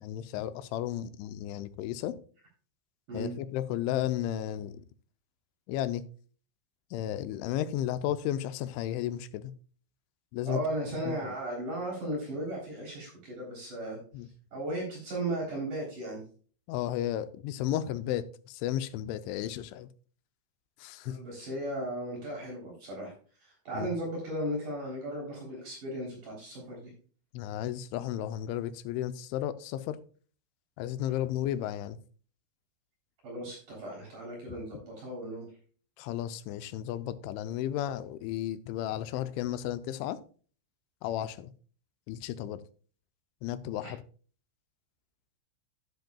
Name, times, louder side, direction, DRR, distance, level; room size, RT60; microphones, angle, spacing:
voice 1, 0.0-2.2 3.1-4.8 5.7-6.0 6.9-9.5 10.3-10.6 11.1-11.3 14.1-14.3 16.7-19.9 20.8-21.2 23.7-23.9 27.3-30.0 30.8-32.0 36.0-40.2 41.0-41.5 42.1-42.6 43.4-44.0, left 12 dB, 85° left, 3.0 m, -33 dB
voice 2, 10.5-14.0 14.5-16.2 21.0-23.1 23.4-26.9 31.1-31.2 33.2-35.5 43.8-43.9, right 1 dB, 45° right, 4.6 m, -36 dB
10.5 x 10.5 x 2.3 m
omnidirectional pair, 5.3 m